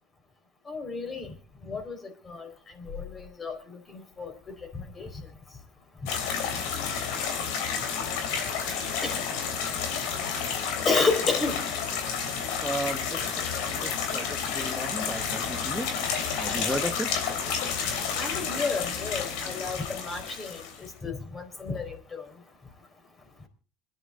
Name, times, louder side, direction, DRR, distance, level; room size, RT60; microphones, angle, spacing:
voice 1, 0.7-1.3 1.6-2.5 2.8-4.6 5.0-5.1 9.0-9.2 10.8-11.6 18.2-20.6 21.0-22.2, left 4 dB, 30° left, 6 dB, 4.3 m, -31 dB
sound 1, 6.1-20.9, left 6 dB, 75° left, 3.1 m, -30 dB
voice 2, 12.6-13.3 13.8-16.0 16.4-17.1, right 1 dB, ahead, 4 dB, 1.3 m, -34 dB
26.5 x 10.5 x 4.0 m, 0.37 s
hypercardioid pair, 70°, 0 cm